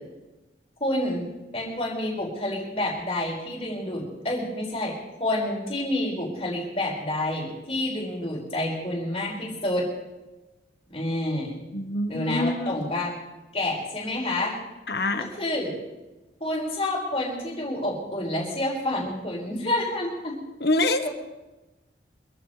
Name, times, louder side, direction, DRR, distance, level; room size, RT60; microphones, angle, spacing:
voice 1, 0.8-9.9 10.9-11.6 12.1-13.1 13.5-14.6 15.3-15.8 16.4-20.4 21.0-21.1, left 1 dB, 35° left, -2 dB, 5.4 m, -28 dB
voice 2, 11.7-12.9 14.9-15.3 20.6-21.1, left 2 dB, 65° left, 8 dB, 1.3 m, -26 dB
27.0 x 14.5 x 3.3 m, 1.1 s
head